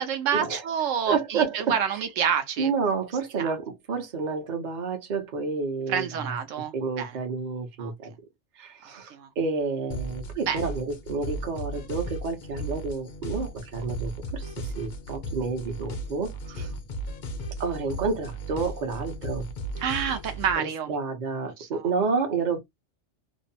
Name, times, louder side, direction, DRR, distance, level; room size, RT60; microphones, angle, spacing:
voice 1, 0.0-2.7 3.4-3.6 5.9-7.2 7.8-7.9 9.1-9.3 10.5-10.6 16.6-16.7 19.8-20.9 21.4-21.9, right 8 dB, 80° right, 0.9 m, -28 dB
voice 2, 1.1-2.0 2.6-6.2 6.7-8.1 8.6-16.7 17.6-19.5 20.6-22.6, right 5 dB, 45° right, 0.8 m, -30 dB
sound 1, 9.9-20.6, right 1 dB, 60° left, 0.5 m, -36 dB
2.6 x 2.0 x 2.6 m
omnidirectional pair, 1.3 m